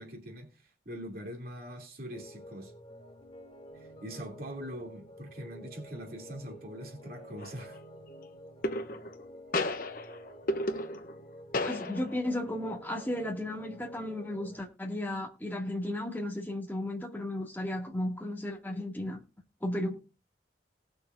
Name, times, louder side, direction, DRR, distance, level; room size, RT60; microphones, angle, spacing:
voice 1, 0.0-2.7 3.7-7.8, equal, 55° right, 2.9 m, -43 dB
sound 1, 2.1-14.6, equal, 35° left, 2.9 m, -50 dB
sound 2, 7.4-7.8 8.6-9.2 9.5-11.2 11.5-12.3, left 1 dB, 50° left, 0.9 m, -33 dB
voice 2, 11.6-19.2 19.6-20.0, left 1 dB, 10° left, 2.3 m, -34 dB
19.5 x 6.8 x 2.6 m
head